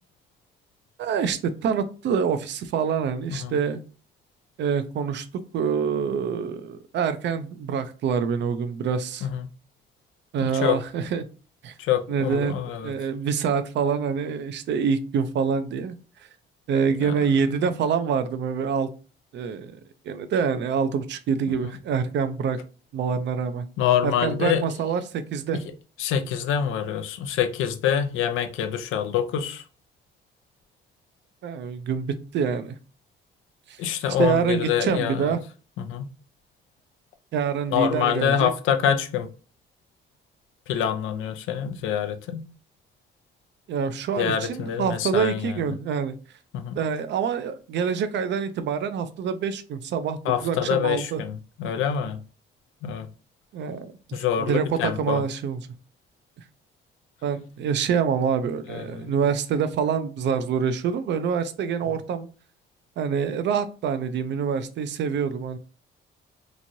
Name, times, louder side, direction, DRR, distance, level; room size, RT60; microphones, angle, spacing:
voice 1, 1.0-3.8 4.6-5.3 5.5-9.3 10.3-11.3 11.6-11.7 12.1-12.6 12.8-16.0 16.7-18.9 19.3-19.8 20.1-22.6 22.9-23.7 24.0-25.6 31.4-32.7 33.7-33.8 34.2-35.4 37.3-38.5 43.7-46.1 46.8-51.2 53.5-55.7 57.2-62.3 63.0-65.6, right 6 dB, 65° right, 0.4 m, -26 dB
voice 2, 11.8-12.9 17.0-17.2 17.6-17.7 23.8-24.6 26.0-29.6 33.8-35.3 35.8-36.1 37.7-39.3 40.7-42.4 44.2-45.6 46.5-46.8 50.3-52.2 52.8-53.1 54.1-55.2 58.7-59.1, left 9 dB, 90° left, 0.5 m, -25 dB
3.0 x 2.6 x 2.6 m
cardioid pair, 90°, 20 cm